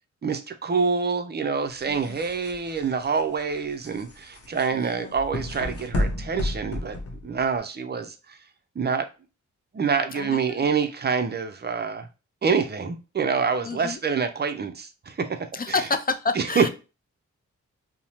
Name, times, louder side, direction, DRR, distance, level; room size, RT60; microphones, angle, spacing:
voice 1, 0.2-7.0 7.2-8.4 8.8-9.1 9.7-12.1 12.4-15.4 15.7-15.8 16.4-16.7, right 5 dB, 35° right, 0.5 m, -26 dB
sound 1, 1.7-7.6, left 1 dB, 50° left, 0.7 m, -32 dB
voice 2, 1.9-2.2 4.7-5.1 10.1-10.7 13.6-14.0 15.5-16.7, left 4 dB, 30° left, 0.4 m, -29 dB
2.6 x 2.1 x 3.0 m
cardioid pair, 55°, 30 cm